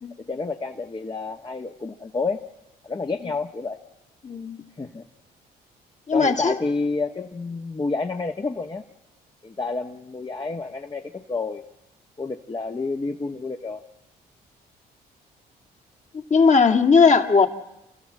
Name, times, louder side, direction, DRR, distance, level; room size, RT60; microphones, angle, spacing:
voice 1, 0.3-2.4 2.8-3.8 4.8-5.0 6.1-8.8 9.4-11.6 12.2-13.8, left 3 dB, 25° left, 2 dB, 1.3 m, -29 dB
voice 2, 4.2-4.6 6.1-6.6 16.1-17.5, left 5 dB, 40° left, 2 dB, 2.3 m, -18 dB
29.5 x 14.0 x 7.6 m, 0.94 s
supercardioid pair, 60°, 18 cm